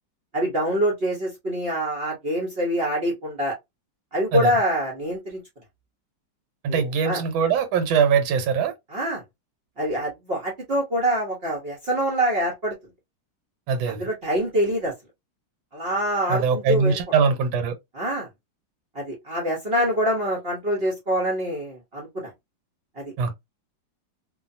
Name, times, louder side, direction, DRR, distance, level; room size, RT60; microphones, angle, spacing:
voice 1, 0.3-3.6 4.1-5.4 6.7-7.2 8.9-9.2 9.8-12.7 13.9-14.9 15.7-17.0 17.9-18.3 18.9-22.3 23.0-23.1, equal, 50° right, 0.7 m, -25 dB
voice 2, 6.6-8.7 13.7-14.1 16.3-17.7 23.2-23.3, right 6 dB, 85° right, 1.5 m, -22 dB
3.1 x 2.3 x 2.5 m
omnidirectional pair, 2.1 m